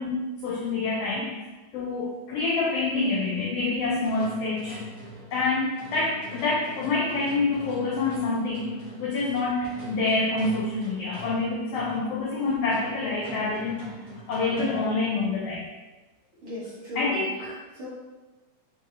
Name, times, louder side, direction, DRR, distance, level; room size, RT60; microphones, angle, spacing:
voice 1, 0.0-1.3 1.7-4.8 5.3-13.9 14.3-15.7 16.9-17.6, left 3 dB, 85° left, -3 dB, 1.3 m, -27 dB
sound 1, 3.8-15.1, right 1 dB, 90° right, 0.7 m, -43 dB
voice 2, 16.4-17.9, left 1 dB, 60° right, -9 dB, 1.5 m, -38 dB
5.7 x 2.6 x 2.6 m, 1.2 s
omnidirectional pair, 3.3 m